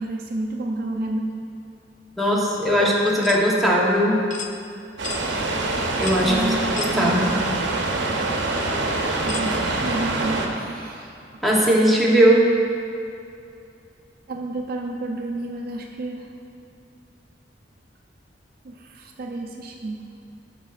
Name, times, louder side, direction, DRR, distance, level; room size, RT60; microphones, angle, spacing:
voice 1, 0.0-1.4 6.2-7.3 9.2-11.1 14.3-16.3 18.6-20.1, right 2 dB, 55° right, 1 dB, 0.5 m, -30 dB
voice 2, 2.2-4.3 6.0-7.3 11.4-12.5, equal, ahead, -4 dB, 0.9 m, -19 dB
sound 1, 3.2-3.4 4.3-4.5 5.0-5.2 6.0-6.3 6.8-7.0 7.8-7.9 9.3-9.5, left 6 dB, 45° left, 0.4 m, -33 dB
sound 2, 5.0-10.5, right 2 dB, 85° right, 0.7 m, -25 dB
9.8 x 6.1 x 2.4 m, 2.5 s
head